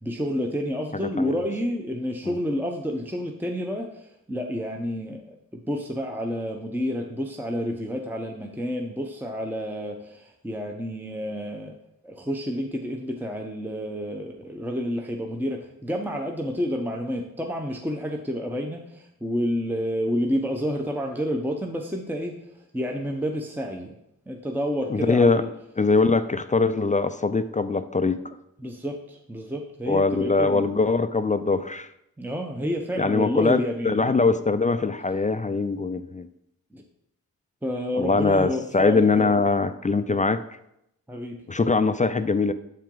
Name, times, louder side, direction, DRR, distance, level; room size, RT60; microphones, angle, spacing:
voice 1, 0.0-11.7 12.0-23.9 24.3-25.5 28.6-30.7 32.2-34.3 36.7-36.8 37.6-39.4 41.1-41.8, equal, 5° right, 2 dB, 0.7 m, -30 dB
voice 2, 24.9-25.4 25.8-28.3 29.9-31.9 33.0-36.3 37.9-40.4 41.5-42.5, left 3 dB, 20° left, 11 dB, 0.3 m, -22 dB
7.3 x 4.4 x 3.8 m, 0.80 s
cardioid pair, 45°, 37 cm